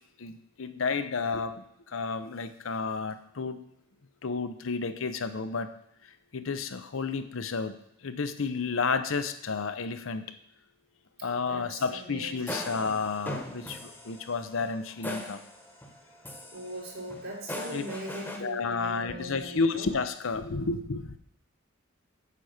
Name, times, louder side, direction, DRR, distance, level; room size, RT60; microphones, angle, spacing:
voice 1, 0.2-3.6 4.2-5.7 6.3-7.8 8.0-10.4 11.2-15.4 17.7-17.8 18.4-21.2, left 4 dB, 75° left, 10 dB, 0.7 m, -31 dB
voice 2, 11.5-12.8 16.5-19.9, right 1 dB, 80° right, -6 dB, 3.9 m, -40 dB
sound 1, 12.3-16.0 16.2-18.4, left 1 dB, 10° left, 1.1 m, -40 dB
8.4 x 5.7 x 6.4 m, 0.74 s
head